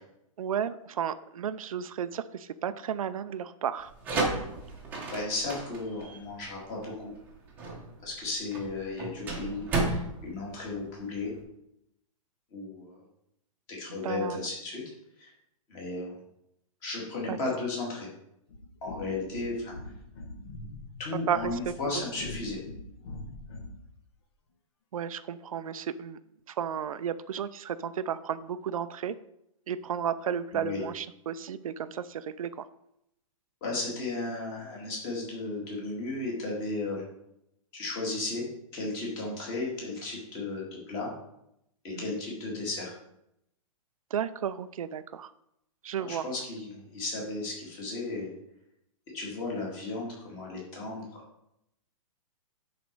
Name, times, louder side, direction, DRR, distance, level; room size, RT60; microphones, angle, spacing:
voice 1, 0.4-3.9 13.9-14.5 17.3-17.4 21.3-21.6 21.9-22.1 24.9-26.2 26.5-29.2 29.7-32.7 41.9-42.1 44.1-45.3 45.8-46.2, right 8 dB, 80° right, 13 dB, 0.5 m, -33 dB
sound 1, 3.8-11.4, right 3 dB, 10° right, 1.0 m, -34 dB
voice 2, 5.1-7.1 8.0-11.3 12.5-13.0 13.7-14.8 15.2-15.3 15.7-16.2 16.8-18.1 18.8-19.7 21.0-22.6 30.5-30.8 33.6-37.0 37.7-38.4 38.7-41.1 41.8-42.9 46.0-48.3 49.1-51.2, left 3 dB, 20° left, -3 dB, 2.1 m, -35 dB
sound 2, 18.5-23.9, left 2 dB, 50° left, 1.2 m, -43 dB
10.5 x 4.2 x 4.6 m, 0.80 s
hypercardioid pair, 180°, 18 cm